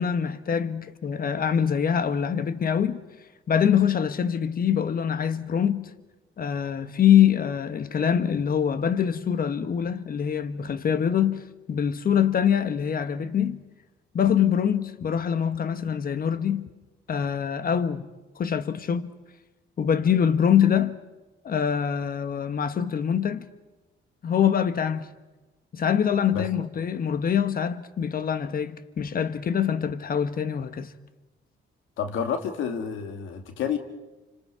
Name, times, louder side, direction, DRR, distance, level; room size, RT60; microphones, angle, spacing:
voice 1, 0.0-3.0 3.5-5.9 6.4-13.6 14.1-16.7 17.1-18.1 18.4-19.1 19.8-21.0 21.4-23.5 24.2-25.1 25.7-30.9, left 8 dB, 50° left, 1.3 m, -24 dB
voice 2, 32.0-33.8, left 7 dB, 85° left, 2.1 m, -29 dB
29.0 x 26.0 x 4.8 m
cardioid pair, 90°, 20 cm